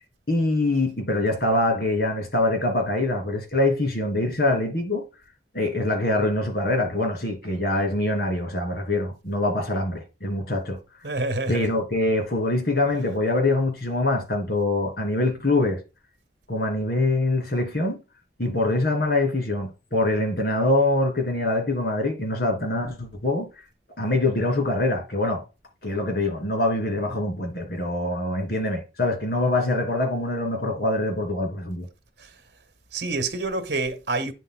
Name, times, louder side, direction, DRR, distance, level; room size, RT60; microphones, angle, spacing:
voice 1, 0.3-5.0 5.5-10.8 11.5-15.8 16.5-18.0 18.4-23.5 24.0-25.4 25.8-31.9, left 2 dB, 55° left, 2.8 m, -24 dB
voice 2, 11.0-11.7 32.2-32.3 32.9-34.3, right 2 dB, 70° right, 1.4 m, -27 dB
9.0 x 8.1 x 2.3 m
head